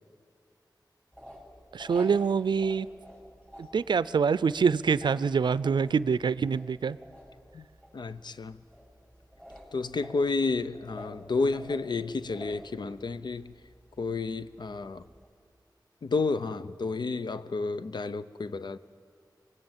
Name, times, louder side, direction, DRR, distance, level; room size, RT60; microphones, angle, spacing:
sound 1, 1.1-15.3, equal, 10° left, 6.9 m, -50 dB
voice 1, 1.7-2.9 3.6-7.0, right 6 dB, 80° right, 0.5 m, -25 dB
voice 2, 7.9-8.6 9.7-13.5 14.0-15.1 16.0-18.8, left 3 dB, 75° left, 0.7 m, -31 dB
24.0 x 19.5 x 7.4 m
wide cardioid pair, 65°, 8 cm